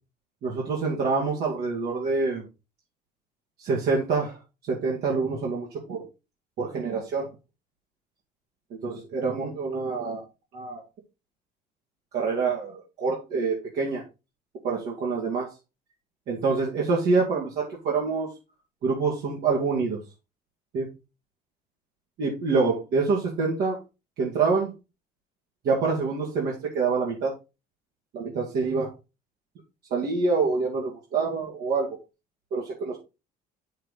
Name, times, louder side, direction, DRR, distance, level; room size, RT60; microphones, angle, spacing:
voice 1, 0.4-2.4 3.6-4.4 4.7-6.0 6.6-7.3 8.7-10.2 10.5-10.8 12.1-14.0 14.6-15.5 16.3-18.3 18.8-20.0 20.7-20.9 22.2-23.8 24.2-24.7 25.6-27.3 28.1-28.9 29.9-32.0 32.5-33.0, right 4 dB, 70° right, -3 dB, 2.3 m, -26 dB
6.6 x 6.4 x 4.1 m, 0.28 s
cardioid pair, 110°, 17 cm